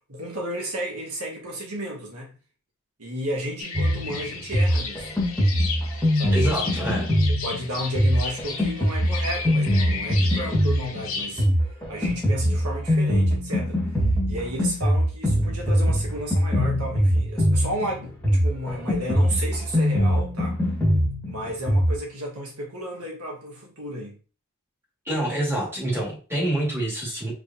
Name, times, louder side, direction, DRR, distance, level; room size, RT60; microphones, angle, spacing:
voice 1, 0.1-2.4 3.0-5.2 6.1-6.4 7.4-11.4 11.9-13.8 14.3-20.6 21.2-24.2, equal, 80° right, 1.6 m, -33 dB
sound 1, 3.6-11.5, left 5 dB, 70° left, 1.3 m, -35 dB
Drum kit, 3.7-21.9, equal, 5° left, 1.7 m, -23 dB
voice 2, 6.3-7.1 25.1-27.3, right 1 dB, 10° right, 2.2 m, -26 dB
4.8 x 3.3 x 2.8 m
head